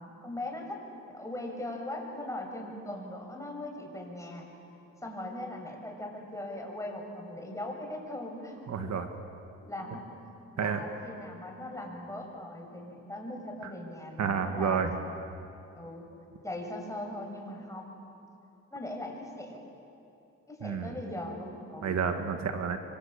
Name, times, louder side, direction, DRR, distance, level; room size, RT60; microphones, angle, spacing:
voice 1, 0.0-4.5 5.0-8.5 9.6-10.1 10.5-14.8 15.8-16.1 16.4-18.1 18.7-19.6 20.5-22.0, left 1 dB, 10° left, 1 dB, 6.8 m, -40 dB
voice 2, 8.7-9.1 10.6-10.8 13.6-13.7 14.2-14.9 20.6-20.9 21.8-22.8, right 6 dB, 60° right, 6 dB, 2.0 m, -30 dB
27.0 x 25.0 x 8.7 m, 2.9 s
cardioid pair, 90°, 30 cm